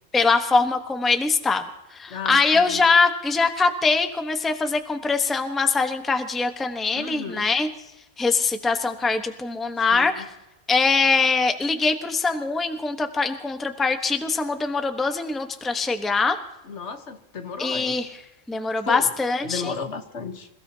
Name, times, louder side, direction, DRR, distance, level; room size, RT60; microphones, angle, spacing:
voice 1, 0.1-1.7 1.9-7.7 8.2-10.2 10.7-16.4 17.6-18.1 18.5-19.7, left 4 dB, ahead, 6 dB, 0.9 m, -22 dB
voice 2, 2.1-2.8 6.9-7.5 9.9-10.3 16.6-17.9 18.8-19.1 19.4-20.5, left 5 dB, 65° left, 7 dB, 1.5 m, -34 dB
27.5 x 16.5 x 2.8 m, 0.93 s
omnidirectional pair, 1.3 m